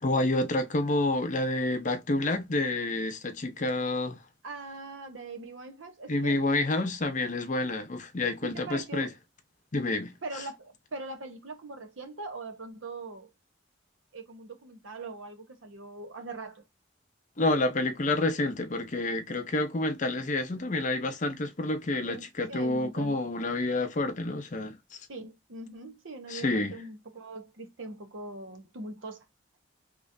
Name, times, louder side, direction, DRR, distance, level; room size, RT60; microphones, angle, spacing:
voice 1, 0.0-4.2 6.1-9.1 9.7-10.1 17.4-24.8 26.3-26.7, left 2 dB, 40° left, 0.7 m, -28 dB
voice 2, 4.4-6.5 8.4-9.1 10.2-13.3 14.1-16.6 22.0-23.2 25.1-29.3, right 3 dB, 90° right, 0.9 m, -41 dB
3.6 x 3.0 x 2.6 m
head